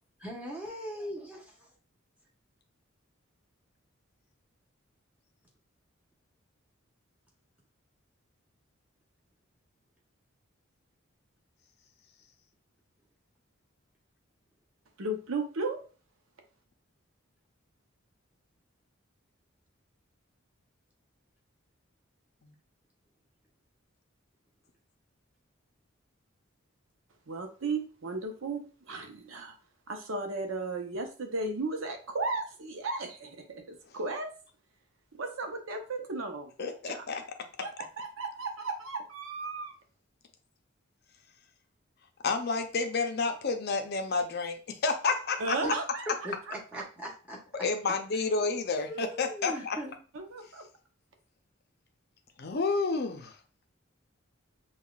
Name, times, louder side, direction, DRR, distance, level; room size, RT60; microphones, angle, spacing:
voice 1, 0.2-1.6 45.6-45.7 46.1-47.4 48.9-50.0, right 1 dB, 5° right, -3 dB, 1.0 m, -39 dB
voice 2, 15.0-15.8 27.3-29.5 29.9-34.4 35.2-37.1 37.6-39.7 45.4-46.8 50.1-50.7, right 3 dB, 80° right, 4 dB, 0.7 m, -35 dB
voice 3, 36.6-37.2 42.2-45.7 47.6-49.8 52.4-53.4, left 4 dB, 50° left, 5 dB, 0.6 m, -30 dB
5.5 x 2.3 x 2.3 m, 0.36 s
head